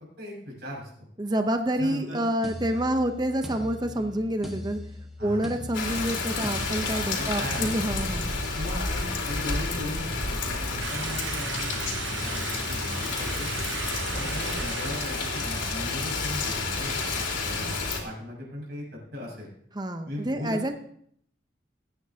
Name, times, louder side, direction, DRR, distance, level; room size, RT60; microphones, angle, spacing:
voice 1, 0.2-0.9 1.8-2.3 5.2-5.5 7.1-7.9 8.5-13.5 14.1-18.8 19.1-19.5 20.0-20.7, left 1 dB, 60° right, -2 dB, 6.2 m, -38 dB
voice 2, 1.2-4.8 5.2-8.3 19.7-20.7, right 1 dB, 20° right, 7 dB, 0.8 m, -28 dB
sound 1, 2.4-8.7 9.4-9.7, left 1 dB, ahead, 1.5 m, -40 dB
Rain, 5.7-18.0, left 3 dB, 80° left, 3.1 m, -30 dB
sound 2, 10.8-16.0, right 8 dB, 75° right, 0.7 m, -38 dB
21.5 x 9.5 x 2.9 m, 0.67 s
head